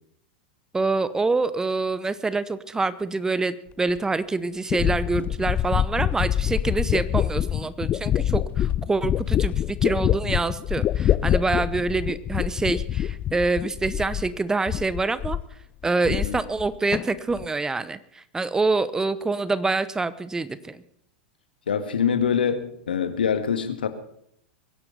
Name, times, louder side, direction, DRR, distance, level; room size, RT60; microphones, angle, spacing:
voice 1, 0.7-15.4 15.8-20.8, right 3 dB, 10° right, 16 dB, 0.8 m, -26 dB
sound 1, 4.0-4.1 4.7-14.4 14.7-15.5 15.8-16.7 16.9-17.5, left 11 dB, 30° left, 0.5 m, -25 dB
voice 2, 16.1-16.4 21.7-23.9, left 7 dB, 75° left, 9 dB, 1.8 m, -24 dB
23.5 x 11.0 x 5.3 m, 0.70 s
figure-of-eight pair, 95°, 5 cm